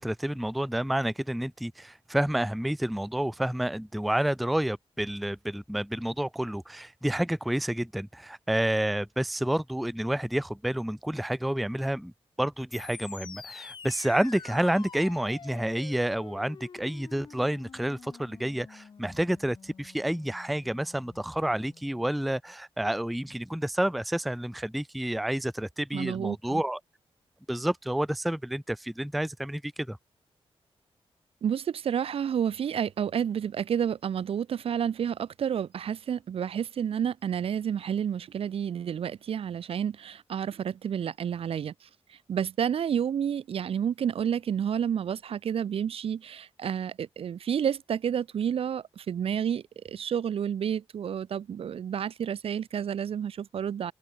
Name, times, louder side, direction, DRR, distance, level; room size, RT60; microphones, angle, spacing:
voice 1, 0.0-12.1 12.4-26.8 27.5-30.0, right 1 dB, ahead, 0.3 m, -29 dB
sound 1, 12.7-22.4, left 6 dB, 45° left, 1.8 m, -48 dB
voice 2, 25.9-26.6 31.4-53.9, right 8 dB, 65° right, 0.6 m, -30 dB
wide cardioid pair, 175°, 10 cm